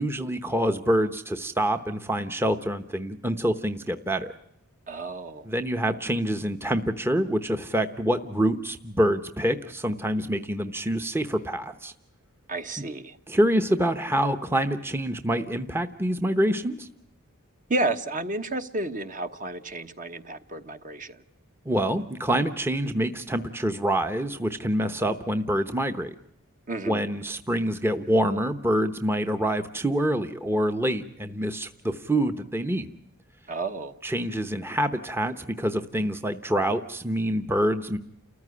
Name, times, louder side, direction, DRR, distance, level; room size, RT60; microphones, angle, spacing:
voice 1, 0.0-4.3 5.4-11.9 13.3-16.9 21.6-26.1 26.9-32.9 34.0-38.0, right 1 dB, 10° right, 0.8 m, -26 dB
voice 2, 4.9-5.5 12.5-13.2 17.7-21.2 26.7-27.0 33.5-33.9, right 2 dB, 40° right, 1.2 m, -31 dB
30.0 x 14.5 x 9.8 m
head